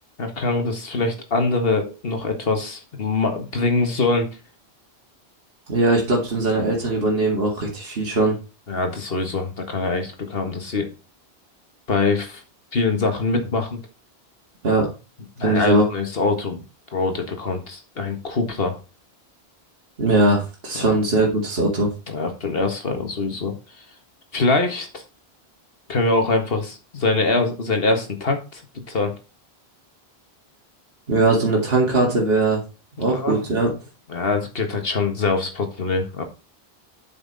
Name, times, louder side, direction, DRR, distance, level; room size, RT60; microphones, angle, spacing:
voice 1, 0.2-4.3 8.7-10.9 11.9-12.4 12.7-13.8 15.4-16.6 16.9-18.8 20.8-21.0 22.1-23.5 24.3-25.0 25.9-28.6 28.9-29.1 33.1-33.4 34.1-36.2, left 3 dB, 65° left, 5 dB, 1.8 m, -23 dB
voice 2, 5.7-8.4 14.6-14.9 15.4-15.8 20.0-21.9 31.1-32.6 33.0-33.7, right 2 dB, 70° right, -2 dB, 2.3 m, -20 dB
7.8 x 5.8 x 4.1 m, 0.31 s
omnidirectional pair, 1.1 m